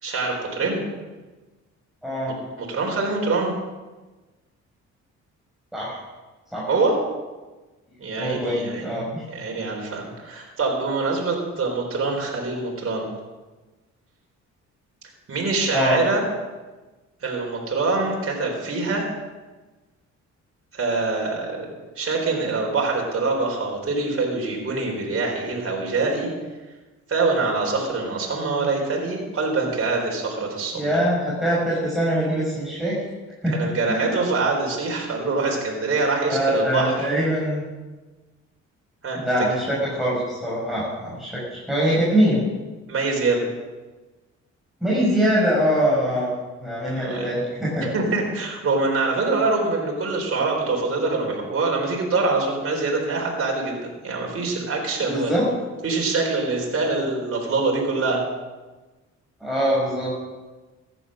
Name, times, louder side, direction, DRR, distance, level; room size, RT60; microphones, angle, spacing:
voice 1, 0.0-0.8 2.6-3.5 6.7-7.0 8.0-9.0 9.3-13.1 15.3-16.2 17.2-19.1 20.7-21.7 22.0-26.3 27.1-31.0 33.5-37.1 39.0-39.2 42.9-43.5 46.9-47.3 47.8-55.3 55.8-58.2, right 3 dB, 45° right, -1 dB, 4.2 m, -24 dB
voice 2, 2.0-2.3 5.7-6.0 6.5-6.7 8.2-9.2 15.7-16.0 30.7-32.9 33.4-34.1 36.3-37.6 39.2-42.4 44.8-46.3 46.6-47.9 55.1-55.5 59.4-60.1, equal, ahead, -7 dB, 6.2 m, -23 dB
14.5 x 10.0 x 6.5 m, 1.2 s
cardioid pair, 90°, 30 cm